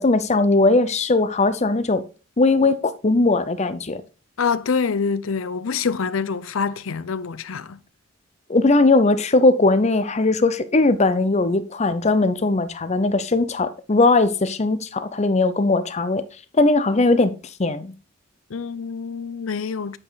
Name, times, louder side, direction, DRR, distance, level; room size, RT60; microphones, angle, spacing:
voice 1, 0.0-2.0 2.4-4.0 8.5-16.2 16.5-17.3 17.6-17.9, left 2 dB, 35° left, 0.6 m, -19 dB
voice 2, 4.4-7.8 18.5-20.0, left 5 dB, 75° left, 0.6 m, -26 dB
8.6 x 5.1 x 4.0 m
head